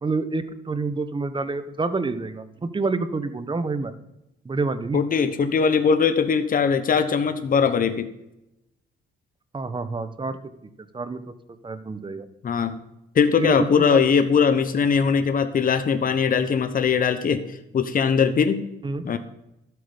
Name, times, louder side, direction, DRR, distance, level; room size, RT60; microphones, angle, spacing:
voice 1, 0.0-3.9 4.4-5.0 9.5-10.4 10.9-11.2 11.6-12.3 13.4-14.0 18.8-19.1, right 3 dB, 25° right, 12 dB, 1.1 m, -28 dB
voice 2, 4.9-8.1 12.4-12.8 13.1-18.6 19.0-19.2, left 6 dB, 45° left, 10 dB, 1.1 m, -21 dB
12.5 x 7.9 x 5.2 m, 0.88 s
cardioid pair, 90°, 20 cm